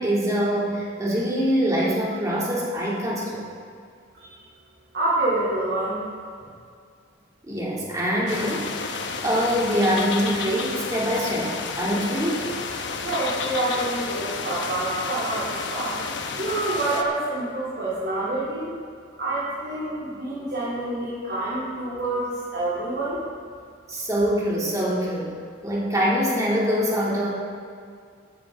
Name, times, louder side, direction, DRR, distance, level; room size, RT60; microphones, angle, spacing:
voice 1, 0.0-3.5 7.4-12.5 23.9-25.4 25.6-27.3, equal, 15° right, -5 dB, 2.6 m, -24 dB
voice 2, 4.9-6.0 13.0-16.0 16.4-18.7 19.2-23.2, right 2 dB, 50° right, -10 dB, 3.2 m, -27 dB
sound 1, 8.3-17.0, left 4 dB, 60° left, 0.9 m, -31 dB
15.0 x 11.0 x 3.8 m, 2.2 s
head